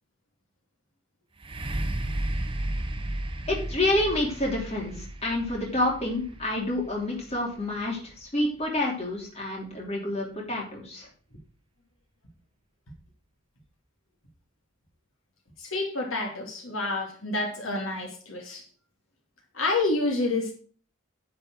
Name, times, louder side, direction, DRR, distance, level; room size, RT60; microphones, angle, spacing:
sound 1, 1.4-9.1 9.8-9.9, right 1 dB, 25° right, 0.9 m, -34 dB
voice 1, 3.5-11.1, left 1 dB, 30° left, -2 dB, 3.1 m, -28 dB
voice 2, 15.6-18.6 19.5-20.5, left 2 dB, 75° left, 1 dB, 2.6 m, -28 dB
10.0 x 5.2 x 6.2 m, 0.41 s
head